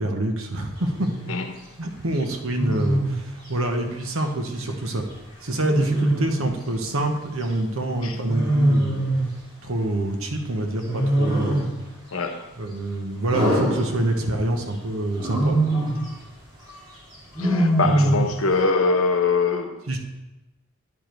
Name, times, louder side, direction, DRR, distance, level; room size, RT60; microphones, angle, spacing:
voice 1, 0.0-1.1 1.8-5.1 5.4-9.1 9.6-11.7 12.6-15.6 17.8-18.1 19.9-20.0, right 1 dB, 75° right, 4 dB, 1.0 m, -26 dB
Wild animals, 0.9-1.3 2.5-3.2 5.6-6.5 8.3-9.4 10.8-11.8 13.3-14.4 15.2-16.1 17.4-18.4, right 1 dB, 20° right, 1.9 m, -22 dB
voice 2, 12.1-12.5 17.4-20.0, left 4 dB, 75° left, 5 dB, 0.9 m, -23 dB
9.9 x 5.1 x 4.4 m, 1.0 s
head